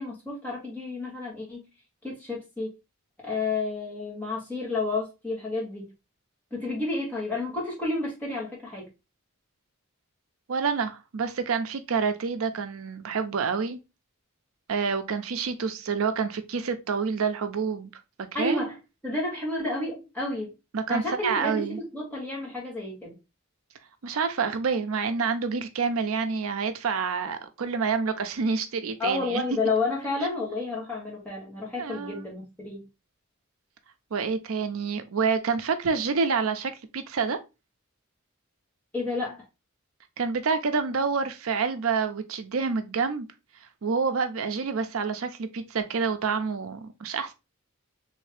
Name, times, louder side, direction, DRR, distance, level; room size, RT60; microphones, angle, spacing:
voice 1, 0.0-1.7 2.0-2.7 3.2-5.8 6.5-8.8 18.3-18.8 19.0-20.5 20.9-23.1 29.0-32.9 38.9-39.4, left 2 dB, 5° left, 1.2 m, -30 dB
voice 2, 10.5-13.8 14.7-17.9 18.4-18.6 20.7-21.8 24.0-29.4 31.8-32.2 34.1-37.4 40.2-43.3 43.8-47.3, right 5 dB, 75° right, 0.5 m, -28 dB
3.3 x 2.7 x 3.2 m
head